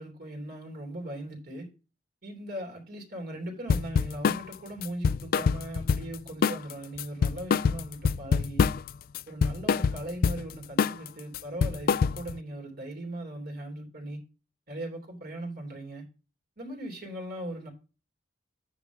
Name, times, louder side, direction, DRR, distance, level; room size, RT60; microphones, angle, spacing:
voice 1, 0.0-1.7 2.2-8.7 9.3-14.2 14.7-16.0 16.6-17.7, right 1 dB, 55° right, 3.2 m, -39 dB
sound 1, 3.7-4.4 4.8-6.2 6.4-6.7 7.0-8.9 9.2-10.4 10.8-11.1 11.3-12.4, left 5 dB, 55° left, 0.3 m, -25 dB
9.7 x 3.7 x 5.9 m
head